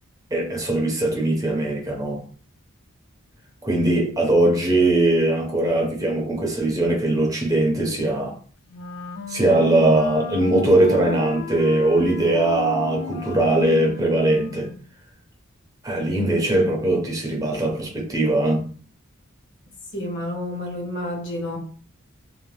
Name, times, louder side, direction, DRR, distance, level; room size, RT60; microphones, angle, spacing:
voice 1, 0.3-2.2 3.6-8.4 9.3-14.7 15.8-18.6, right 2 dB, 15° right, 0.6 m, -20 dB
Wind instrument woodwind instrument, 8.7-14.9, left 5 dB, 75° left, 0.4 m, -34 dB
voice 2, 19.9-21.6, left 1 dB, 55° left, 0.9 m, -29 dB
2.6 x 2.1 x 3.1 m
head